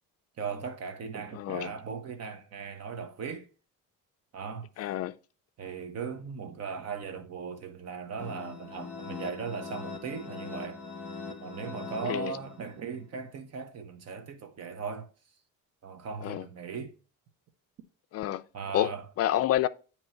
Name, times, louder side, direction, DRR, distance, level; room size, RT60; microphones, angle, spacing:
voice 1, 0.4-3.5 4.3-4.7 5.6-10.8 11.4-15.1 15.8-16.9 18.5-19.1, right 6 dB, 50° right, 1.0 m, -38 dB
voice 2, 1.4-1.7 4.8-5.1 12.0-12.3 16.2-16.4 18.1-18.4 18.7-18.9 19.2-19.7, left 13 dB, 45° left, 0.4 m, -28 dB
sound 1, 8.2-12.9, left 4 dB, 5° left, 1.2 m, -41 dB
9.2 x 3.1 x 4.4 m
cardioid pair, 135°, 33 cm